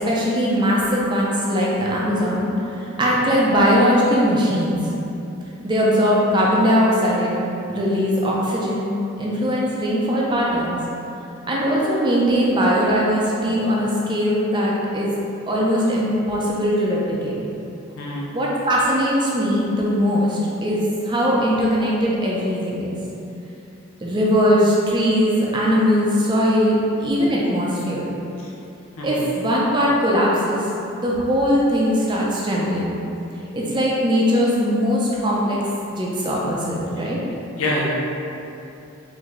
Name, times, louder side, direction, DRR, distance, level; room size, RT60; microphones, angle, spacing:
voice 1, 0.0-2.5 3.0-4.8 5.6-7.4 7.7-10.8 11.5-15.1 15.5-17.4 18.3-23.0 24.0-28.1 29.0-30.6 31.0-33.0 33.5-35.6 35.9-37.2, equal, 20° right, -5 dB, 0.5 m, -20 dB
voice 2, 37.6-37.9, left 1 dB, 90° left, -4 dB, 0.7 m, -25 dB
3.7 x 2.7 x 3.1 m, 2.8 s
head